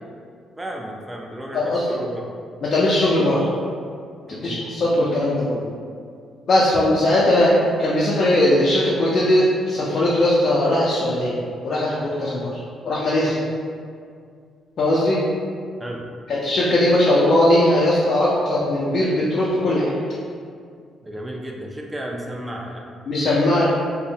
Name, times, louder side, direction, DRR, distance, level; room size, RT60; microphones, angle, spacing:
voice 1, 0.6-2.3 4.2-4.6 15.8-16.1 21.0-22.9, right 1 dB, 15° right, 0 dB, 0.3 m, -33 dB
voice 2, 1.5-2.0 2.6-3.5 4.3-5.6 6.5-11.3 11.6-12.5 12.8-13.4 14.8-15.2 16.3-19.9 23.1-23.6, left 1 dB, 55° left, -7 dB, 0.4 m, -19 dB
2.5 x 2.0 x 2.7 m, 2.2 s
cardioid pair, 90°, 0 cm